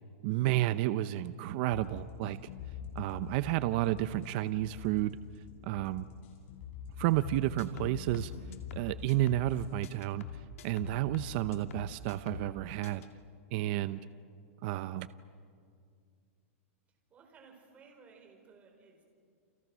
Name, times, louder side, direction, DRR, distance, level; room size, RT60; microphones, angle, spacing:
voice 1, 0.2-2.4 2.9-5.2 5.6-6.1 7.0-8.3 8.7-10.2 10.6-13.0 13.5-14.0 14.6-15.1, right 15 dB, 45° right, 13 dB, 0.7 m, -31 dB
sound 1, 1.7-9.7, left 7 dB, 60° left, 7.2 m, -46 dB
sound 2, 7.2-9.6 9.8-12.6 12.8-13.1, left 8 dB, 80° left, 2.4 m, -45 dB
voice 2, 17.1-19.0, right 5 dB, 20° right, 2 dB, 4.8 m, -58 dB
30.0 x 28.5 x 6.3 m, 2.2 s
supercardioid pair, 155°, 7 cm